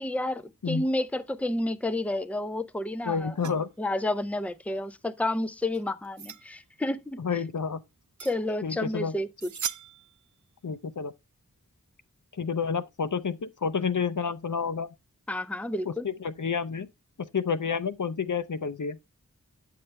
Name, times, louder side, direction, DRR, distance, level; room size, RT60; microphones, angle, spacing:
voice 1, 0.0-3.3 3.8-7.2 8.2-9.3 15.3-16.0, left 1 dB, 5° left, 0.6 m, -30 dB
voice 2, 3.0-3.7 7.2-7.8 8.6-9.1 10.6-11.1 12.3-14.9 15.9-16.9 17.2-19.0, left 6 dB, 65° left, 0.7 m, -29 dB
sound 1, 3.4-3.6 5.7-6.5 8.2-8.4 8.7-8.8 9.4-10.3, right 8 dB, 60° right, 0.5 m, -37 dB
9.3 x 6.8 x 3.3 m
wide cardioid pair, 60°, 33 cm